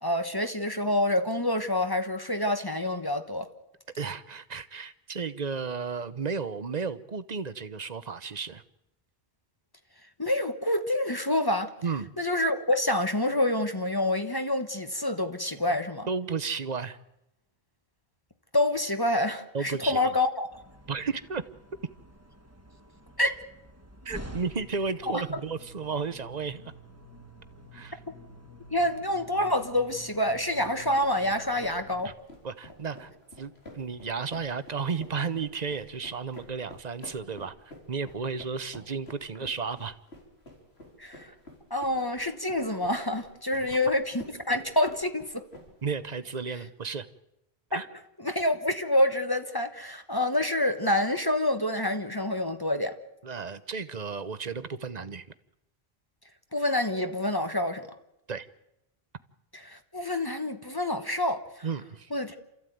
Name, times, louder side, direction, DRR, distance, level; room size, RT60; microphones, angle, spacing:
voice 1, 0.0-3.5 10.2-11.7 12.2-16.1 18.5-20.5 23.2-23.3 25.1-25.2 28.1-28.2 28.7-32.1 41.0-41.3 41.7-45.4 47.7-47.8 48.2-52.9 56.5-57.8 59.7-61.4 62.1-62.4, left 1 dB, 20° left, 1.3 m, -27 dB
voice 2, 4.0-8.6 11.8-12.1 15.7-15.8 16.1-17.0 19.5-20.2 20.9-21.4 24.0-26.7 27.7-28.0 32.0-32.1 32.4-33.1 33.4-40.0 43.5-43.8 45.8-47.1 47.7-47.9 53.2-55.3 58.3-58.5 61.6-62.1, right 5 dB, 45° right, 1.0 m, -33 dB
sound 1, 20.5-32.0, left 1 dB, 15° right, 1.8 m, -49 dB
sound 2, 30.3-46.0, left 1 dB, 85° left, 4.8 m, -49 dB
28.0 x 14.5 x 9.3 m
omnidirectional pair, 1.1 m